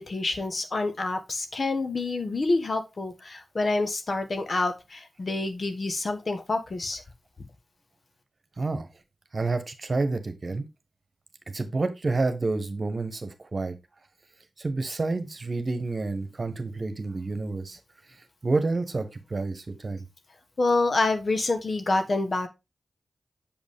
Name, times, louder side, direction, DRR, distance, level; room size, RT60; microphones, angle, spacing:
voice 1, 0.0-7.0 20.6-22.5, left 2 dB, 55° left, 1.4 m, -27 dB
voice 2, 8.6-8.9 9.3-10.6 11.5-13.7 14.6-17.8 18.4-20.0, right 3 dB, 50° right, 1.3 m, -29 dB
7.2 x 5.2 x 3.6 m
cardioid pair, 45°, 0 cm